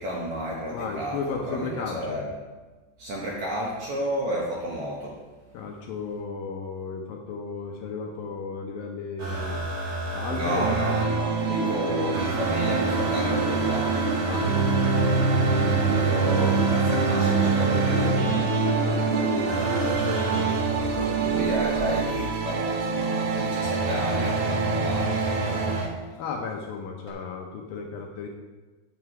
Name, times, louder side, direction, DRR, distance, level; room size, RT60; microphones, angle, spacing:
voice 1, 0.0-2.4 3.0-5.2 10.3-14.3 15.3-18.8 21.2-25.8, equal, 65° right, -4 dB, 1.9 m, -32 dB
voice 2, 0.7-2.2 5.5-9.6 10.1-10.7 11.5-11.8 14.3-14.5 18.7-21.5 26.2-28.3, left 5 dB, 75° left, 1 dB, 2.3 m, -34 dB
sound 1, 9.2-11.0 12.1-18.1 19.5-22.4 23.6-25.9 27.1-27.2, right 2 dB, 45° right, 2.2 m, -32 dB
sound 2, 10.5-25.9, right 5 dB, 85° right, 3.1 m, -25 dB
sound 3, 11.5-19.9, left 2 dB, 45° left, 2.2 m, -32 dB
7.9 x 7.7 x 4.8 m, 1.3 s
omnidirectional pair, 4.6 m